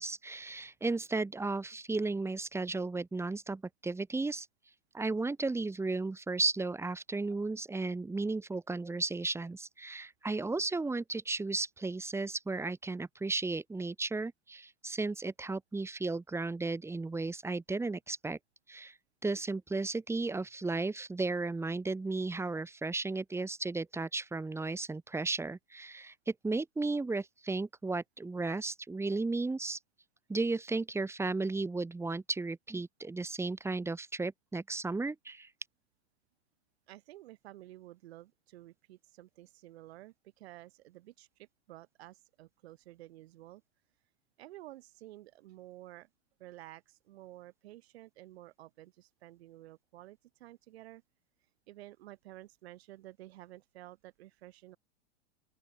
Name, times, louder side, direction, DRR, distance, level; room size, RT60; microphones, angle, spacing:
voice 1, 0.0-4.5 4.9-18.4 18.7-18.9 19.2-29.8 30.3-35.5, right 3 dB, 10° right, 1.4 m, -34 dB
voice 2, 36.9-43.6 44.4-46.1 46.4-51.0 51.7-54.8, right 16 dB, 65° right, 3.9 m, -52 dB
open air
hypercardioid pair, 110°, 34 cm